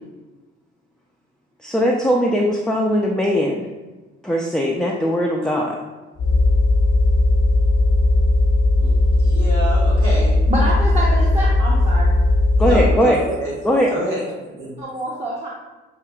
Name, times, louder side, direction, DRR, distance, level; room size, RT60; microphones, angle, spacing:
voice 1, 1.6-3.7 4.2-5.8 12.6-13.2 13.6-13.9, equal, ahead, -2 dB, 0.5 m, -19 dB
sound 1, 6.2-13.1, left 2 dB, 60° left, 0.9 m, -17 dB
voice 2, 8.8-10.4 12.6-13.5 13.9-14.7, right 1 dB, 90° right, -6 dB, 1.4 m, -27 dB
voice 3, 10.4-12.1 14.8-15.5, right 1 dB, 20° right, -6 dB, 0.9 m, -26 dB
6.4 x 2.8 x 2.3 m, 1.2 s
hypercardioid pair, 55°, 31 cm